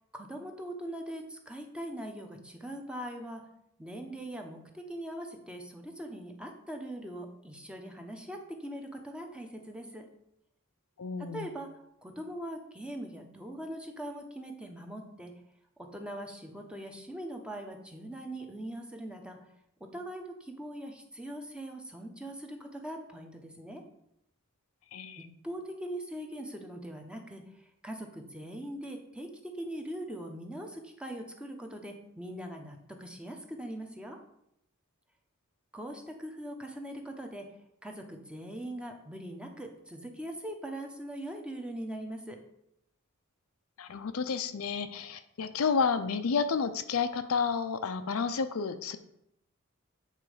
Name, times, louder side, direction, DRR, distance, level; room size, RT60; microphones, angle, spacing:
voice 1, 0.1-3.5 3.8-10.1 11.2-11.7 12.0-15.3 15.8-19.4 19.8-23.8 25.2-34.2 35.7-37.5 37.8-42.4, right 1 dB, 5° right, 3 dB, 0.8 m, -41 dB
voice 2, 11.0-11.5 24.9-25.3 43.8-49.0, left 5 dB, 75° left, 10 dB, 0.5 m, -31 dB
8.3 x 4.0 x 4.9 m, 0.78 s
head